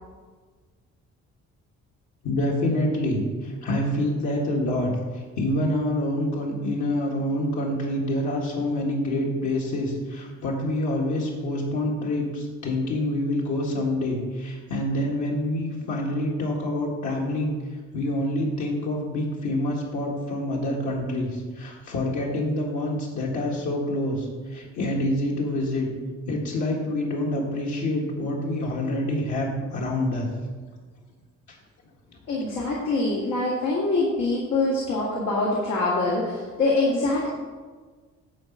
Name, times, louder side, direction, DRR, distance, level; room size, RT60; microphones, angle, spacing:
voice 1, 2.2-4.9 5.4-17.5 17.9-25.9 26.3-30.3, left 1 dB, 70° left, -3 dB, 1.8 m, -26 dB
voice 2, 32.3-37.3, left 2 dB, 90° left, -5 dB, 2.0 m, -24 dB
10.5 x 4.0 x 7.5 m, 1.5 s
cardioid pair, 90°, 30 cm